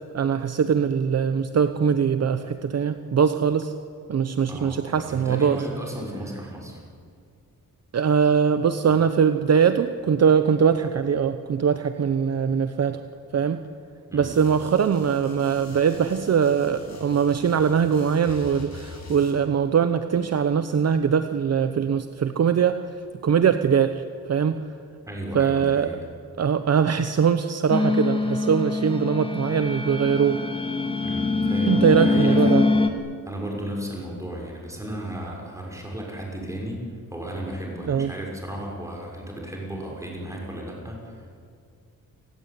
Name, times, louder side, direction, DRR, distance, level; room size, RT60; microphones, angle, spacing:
voice 1, 0.1-3.7 4.1-5.6 7.9-13.0 13.3-13.6 14.1-22.8 23.2-24.6 25.3-25.9 26.4-30.4 31.7-32.6 37.9-38.1, right 7 dB, 50° right, 9 dB, 0.9 m, -22 dB
voice 2, 4.5-6.8 14.1-14.4 25.1-26.1 31.0-32.8 33.3-36.8 37.1-41.4, right 1 dB, 10° right, -1 dB, 6.3 m, -34 dB
sound 1, 14.3-19.3, left 4 dB, 50° left, 6.8 m, -43 dB
sound 2, 27.7-32.9, left 3 dB, 15° left, 1.8 m, -23 dB
29.0 x 17.5 x 9.7 m, 2.3 s
wide cardioid pair, 140°, 34 cm